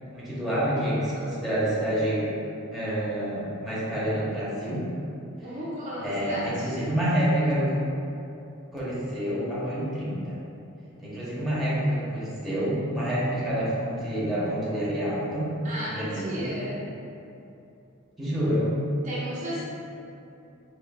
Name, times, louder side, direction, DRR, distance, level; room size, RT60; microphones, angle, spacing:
voice 1, 0.1-2.3 2.7-4.8 6.0-7.7 8.7-10.4 11.0-15.5 15.8-16.5 18.2-18.7 19.6-19.7, equal, ahead, -10 dB, 0.8 m, -28 dB
voice 2, 5.4-6.7 15.6-16.8 19.0-19.6, equal, 35° right, -8 dB, 0.5 m, -34 dB
4.8 x 2.8 x 2.3 m, 2.8 s
head